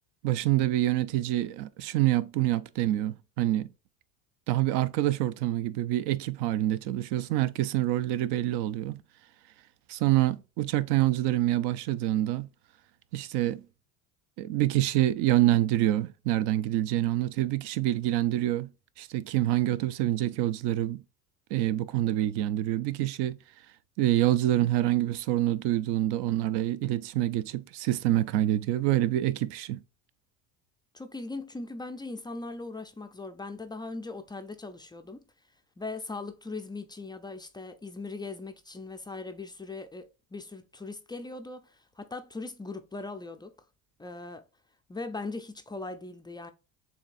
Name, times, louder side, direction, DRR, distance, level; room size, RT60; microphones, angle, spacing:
voice 1, 0.2-3.7 4.5-9.0 9.9-12.5 13.1-13.6 14.4-18.7 19.0-21.0 21.5-23.4 24.0-29.8, right 14 dB, 60° right, 0.6 m, -26 dB
voice 2, 30.9-35.2 35.8-43.5 44.0-44.4 44.9-46.5, left 3 dB, 10° left, 0.3 m, -39 dB
7.1 x 2.7 x 2.5 m
supercardioid pair, 95°, 45 cm